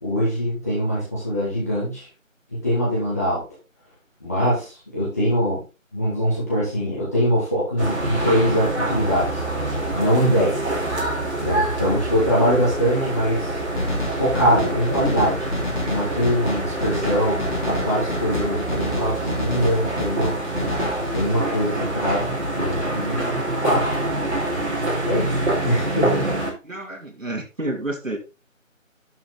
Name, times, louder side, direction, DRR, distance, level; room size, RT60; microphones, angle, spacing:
voice 1, 0.0-2.1 2.6-3.4 4.2-5.6 5.9-9.3 9.9-10.7 11.4-13.6 14.2-15.5 15.8-20.4 21.0-23.9 25.0-26.4, equal, 10° left, -10 dB, 2.0 m, -23 dB
sound 1, 7.8-26.5, right 1 dB, 55° right, 4.4 m, -26 dB
sound 2, 13.8-21.2, left 2 dB, 35° left, 2.9 m, -30 dB
voice 2, 26.6-28.2, right 1 dB, 70° right, 2 dB, 3.1 m, -30 dB
11.5 x 5.6 x 4.0 m, 0.29 s
figure-of-eight pair, 170°, 40 cm